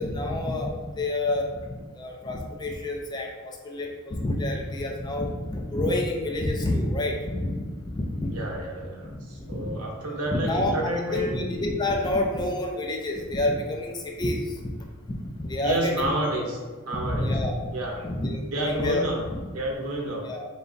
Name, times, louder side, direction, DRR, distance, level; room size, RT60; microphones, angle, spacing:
voice 1, 0.0-8.3 9.0-9.8 10.3-14.7 15.4-16.1 16.4-16.5 17.0-17.6 18.0-19.0 19.3-19.4 20.2-20.4, left 1 dB, 20° left, 0 dB, 0.4 m, -28 dB
voice 2, 8.2-11.4 15.6-16.6 16.8-17.3 17.7-18.0 18.5-19.2 19.5-20.3, right 1 dB, 80° right, -1 dB, 0.8 m, -30 dB
3.9 x 2.3 x 3.8 m, 1.4 s
head